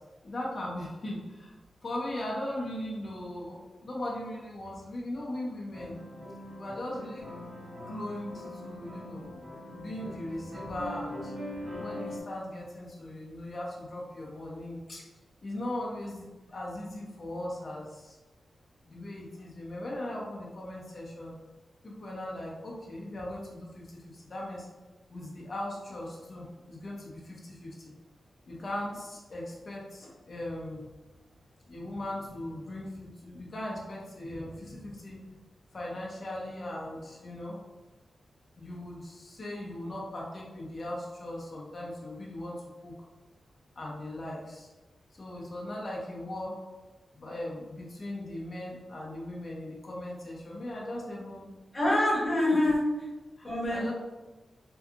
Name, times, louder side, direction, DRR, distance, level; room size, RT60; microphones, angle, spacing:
voice 1, 0.2-1.6 1.8-6.0 6.6-7.3 7.9-9.4 9.7-11.3 11.8-15.0 15.4-18.2 18.9-21.4 21.8-24.7 25.1-27.9 28.5-30.8 31.7-35.4 35.7-37.6 38.6-42.6 42.8-42.9 43.8-44.7 45.2-46.6 47.1-51.5 53.4-53.9, left 1 dB, 40° left, -4 dB, 0.6 m, -39 dB
sound 1, 5.7-12.2, left 1 dB, 35° right, 1.0 m, -42 dB
voice 2, 51.7-52.8 53.4-53.9, left 1 dB, 20° left, -7 dB, 1.0 m, -25 dB
2.7 x 2.3 x 2.5 m, 1.2 s
wide cardioid pair, 120°, 0 cm